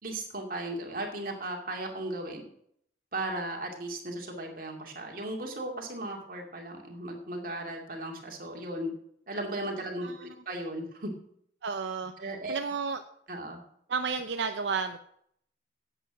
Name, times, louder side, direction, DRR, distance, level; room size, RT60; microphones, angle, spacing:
voice 1, 0.0-2.4 3.1-8.9 9.3-11.1 12.2-12.6 13.3-13.6, right 1 dB, 50° right, 1 dB, 2.4 m, -36 dB
voice 2, 11.6-13.0 13.9-15.0, right 5 dB, 75° right, 7 dB, 0.6 m, -32 dB
10.0 x 8.1 x 6.3 m, 0.68 s
head